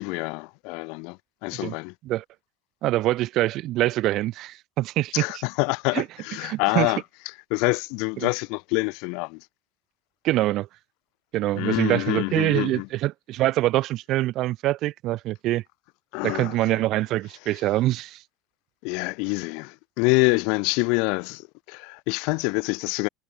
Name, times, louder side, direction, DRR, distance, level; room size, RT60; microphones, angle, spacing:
voice 1, 0.0-1.9 5.1-9.5 11.5-12.9 16.1-16.8 18.8-23.1, left 32 dB, 55° left, 1.0 m, -26 dB
voice 2, 2.8-5.2 5.9-6.0 6.4-6.9 8.2-8.3 10.2-10.7 11.3-15.6 16.2-18.2, right 16 dB, 40° right, 1.8 m, -24 dB
supercardioid pair, 165°, 0 cm